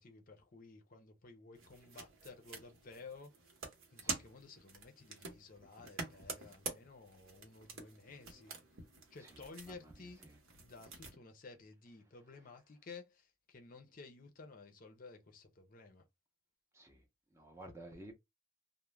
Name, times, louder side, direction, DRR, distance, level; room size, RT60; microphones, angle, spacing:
voice 1, 0.0-3.3 3.9-8.5 9.1-10.3 10.5-16.0, left 4 dB, 40° left, 0.5 m, -54 dB
sound 1, 1.5-11.2, right 4 dB, 75° right, 0.9 m, -48 dB
voice 2, 9.2-9.9 10.2-10.4 16.7-17.0 17.3-18.1, right 1 dB, 15° right, 0.5 m, -54 dB
2.3 x 2.1 x 3.1 m
head